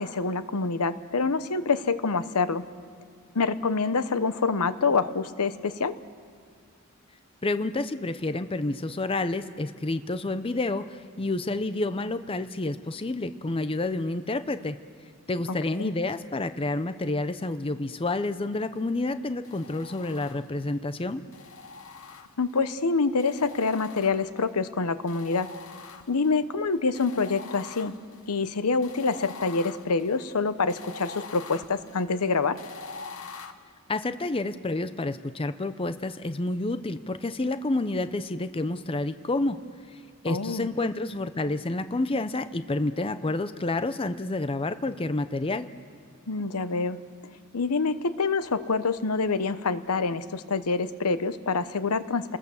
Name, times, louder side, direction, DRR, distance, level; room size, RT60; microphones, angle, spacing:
voice 1, 0.0-2.6 3.3-6.0 15.8-15.9 22.4-25.5 26.1-27.9 28.3-32.6 40.3-40.7 46.3-47.0 47.5-52.4, left 4 dB, 90° left, 13 dB, 0.9 m, -26 dB
voice 2, 7.4-14.8 15.3-21.2 33.9-39.6 39.9-45.7, left 2 dB, 25° left, 11 dB, 0.6 m, -29 dB
sound 1, 19.4-20.7 21.3-22.6 23.2-24.5 25.1-26.4 26.9-33.5, left 4 dB, 70° left, 1.2 m, -44 dB
29.0 x 20.0 x 7.1 m, 2.2 s
head